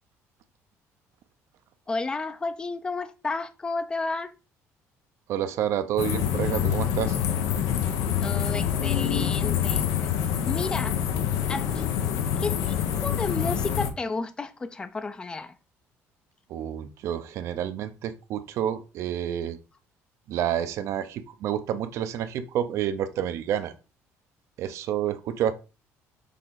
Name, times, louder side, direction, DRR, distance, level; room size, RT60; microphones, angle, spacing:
voice 1, 1.9-4.3 8.2-9.9 10.5-11.0 11.5-11.9 12.4-12.8 13.0-15.5, left 3 dB, 15° left, 0.5 m, -32 dB
voice 2, 5.3-7.2 16.5-19.6 20.3-23.7 24.6-25.5, right 10 dB, 60° right, 0.8 m, -29 dB
sound 1, 6.0-13.9, left 9 dB, 90° left, 1.0 m, -26 dB
6.7 x 3.7 x 4.0 m
cardioid pair, 160°, 6 cm